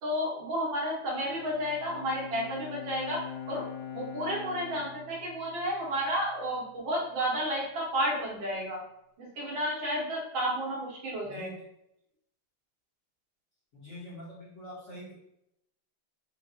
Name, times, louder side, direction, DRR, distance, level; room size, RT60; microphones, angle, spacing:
voice 1, 0.0-3.6 3.9-8.8 9.2-11.5, equal, 70° right, -3 dB, 1.6 m, -32 dB
Bowed string instrument, 1.0-6.5, left 8 dB, 80° left, 1.3 m, -43 dB
voice 2, 11.2-11.6 13.7-15.1, left 1 dB, 45° left, -9 dB, 1.2 m, -44 dB
4.5 x 2.3 x 2.6 m, 0.80 s
omnidirectional pair, 2.2 m